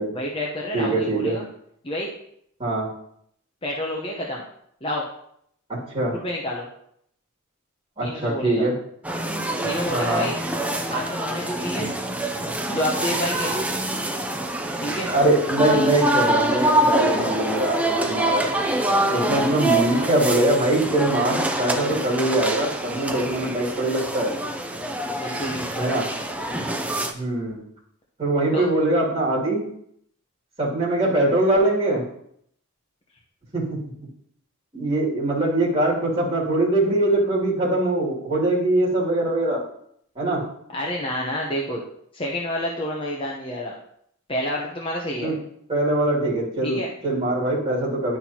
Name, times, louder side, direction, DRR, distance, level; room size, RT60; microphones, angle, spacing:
voice 1, 0.1-1.5 1.8-2.1 3.6-4.4 4.8-5.0 6.1-6.7 8.0-8.7 9.6-10.4 10.9-11.9 12.7-13.5 14.8-15.1 19.1-19.3 25.2-25.9 28.5-28.6 40.7-41.8 42.1-43.7 44.3-45.3 46.6-46.9, left 1 dB, 25° left, -2 dB, 0.8 m, -28 dB
voice 2, 0.7-1.4 2.6-2.9 5.9-6.1 8.0-8.7 9.9-10.3 15.1-18.5 19.1-24.4 25.8-26.0 27.1-27.6 28.2-29.6 30.6-32.0 33.5-33.8 34.7-39.6 40.1-40.4 45.2-45.4 45.7-48.2, right 1 dB, 25° right, -8 dB, 2.5 m, -22 dB
sound 1, 9.0-27.1, right 1 dB, 5° right, 0.5 m, -25 dB
11.0 x 4.3 x 2.9 m, 0.70 s
head